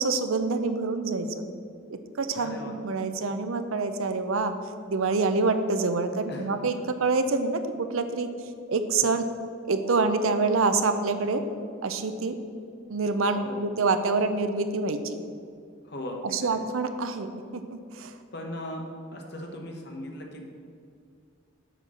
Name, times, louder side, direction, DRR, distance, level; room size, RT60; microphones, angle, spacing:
voice 1, 0.0-1.5 1.9-4.5 4.9-8.3 8.7-9.3 9.6-11.4 11.8-12.4 12.9-15.2 16.2-18.1, right 3 dB, 75° right, 9 dB, 0.6 m, -26 dB
voice 2, 2.4-2.8 6.3-6.7 13.4-13.7 15.8-16.6 18.3-18.8 19.1-20.5, left 1 dB, 50° left, 1 dB, 1.1 m, -38 dB
7.7 x 4.5 x 6.4 m, 2.3 s
head